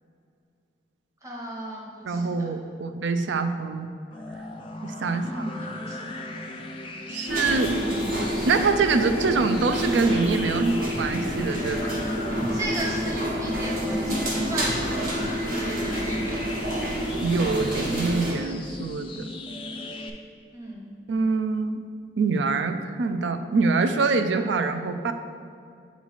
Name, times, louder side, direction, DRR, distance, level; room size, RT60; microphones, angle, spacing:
voice 1, 1.2-2.5 5.1-6.3 12.5-16.7 20.5-20.8, right 1 dB, 15° right, -3 dB, 0.9 m, -36 dB
voice 2, 2.0-3.9 4.8-5.4 7.1-7.8 8.4-12.0 17.2-19.3 21.1-21.8 22.2-25.1, right 4 dB, 75° right, 8 dB, 0.4 m, -25 dB
sound 1, 4.1-20.1, left 2 dB, 30° left, 0.3 m, -36 dB
sound 2, 7.3-18.3, equal, 50° right, 1.0 m, -28 dB
8.2 x 3.1 x 4.0 m, 2.3 s
head